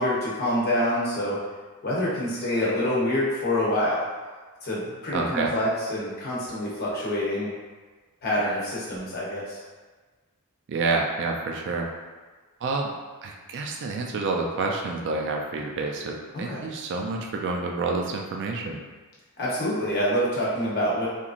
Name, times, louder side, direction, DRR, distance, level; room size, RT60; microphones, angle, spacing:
voice 1, 0.0-1.4 1.8-4.1 4.6-7.5 8.2-9.6 16.3-16.6 19.4-21.1, left 1 dB, 45° left, -6 dB, 0.8 m, -26 dB
voice 2, 5.1-5.5 10.7-11.9 12.6-12.9 13.2-18.8, right 3 dB, 55° right, 1 dB, 0.4 m, -28 dB
3.0 x 2.5 x 2.4 m, 1.4 s
head